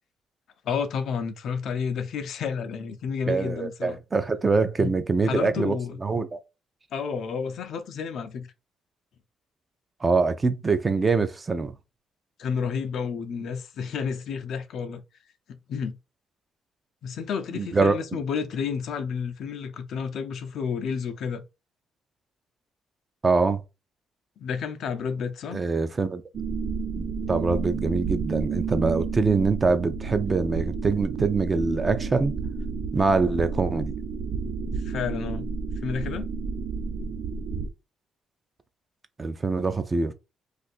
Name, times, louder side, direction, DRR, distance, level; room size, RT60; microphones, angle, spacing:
voice 1, 0.6-4.0 4.8-4.9 5.3-6.0 6.9-8.5 12.4-15.0 15.5-16.0 17.0-21.4 24.4-25.6 34.8-35.5 35.8-36.3, left 6 dB, 70° left, 0.5 m, -31 dB
voice 2, 3.3-6.4 10.0-11.7 17.5-18.0 23.2-23.6 25.5-26.2 27.0-32.4 32.9-33.9 39.2-40.1, right 4 dB, 30° right, 0.5 m, -24 dB
sound 1, 26.3-37.7, right 5 dB, 70° right, 0.9 m, -31 dB
2.6 x 2.5 x 4.2 m
cardioid pair, 90°, 0 cm